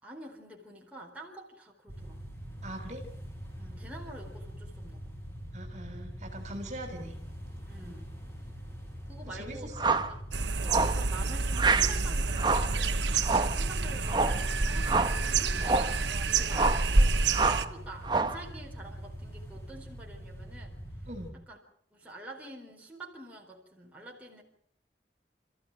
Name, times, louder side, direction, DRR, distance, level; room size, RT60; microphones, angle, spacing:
voice 1, 0.0-2.2 3.6-5.1 7.7-8.1 9.1-10.2 10.6-13.0 13.4-20.8 21.5-21.6 21.9-24.4, right 1 dB, 10° right, -1 dB, 4.3 m, -47 dB
sound 1, 1.9-21.3, equal, 15° left, 5.8 m, -43 dB
voice 2, 2.6-3.0 5.5-7.1 9.2-9.9 21.1-21.3, right 1 dB, 40° right, 5 dB, 3.8 m, -42 dB
sound 2, 9.8-10.1 10.7-11.0 11.6-11.9 12.4-12.7 13.2-13.6 14.1-14.4 14.8-15.2 15.6-16.0 16.5-16.9 17.3-17.7 18.0-18.4, right 3 dB, 25° right, 1.1 m, -27 dB
sound 3, 10.3-17.6, right 3 dB, 80° right, 1.2 m, -28 dB
29.0 x 14.5 x 9.0 m, 0.67 s
head